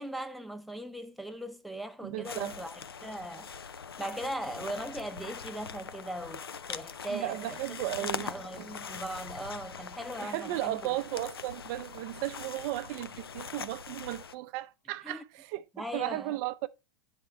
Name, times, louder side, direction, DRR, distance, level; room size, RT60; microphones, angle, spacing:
voice 1, 0.0-3.5 4.0-7.6 8.0-10.8 15.0-15.2 15.7-16.4, right 1 dB, ahead, 0.6 m, -39 dB
voice 2, 2.0-2.5 7.1-8.3 10.2-16.7, right 16 dB, 45° right, 0.5 m, -35 dB
sound 1, 2.2-14.3, left 6 dB, 90° left, 0.5 m, -42 dB
sound 2, 5.9-14.4, left 10 dB, 50° left, 0.8 m, -55 dB
9.5 x 3.6 x 4.3 m
hypercardioid pair, 105°, 12 cm